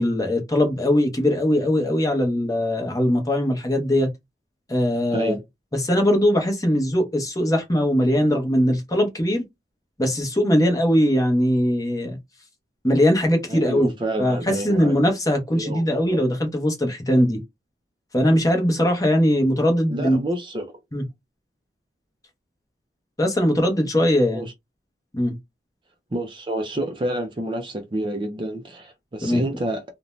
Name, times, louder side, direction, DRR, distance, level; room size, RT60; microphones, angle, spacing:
voice 1, 0.0-4.1 4.7-5.4 5.8-9.4 10.0-12.2 12.8-13.9 14.2-17.4 18.1-20.2 20.9-21.0 23.2-24.5 25.1-25.4 29.2-29.4, equal, 20° left, 0.8 m, -20 dB
voice 2, 5.1-5.4 13.5-15.0 15.5-16.2 19.9-20.7 24.3-24.5 26.1-29.8, right 1 dB, 30° right, 0.4 m, -29 dB
2.6 x 2.1 x 3.0 m
head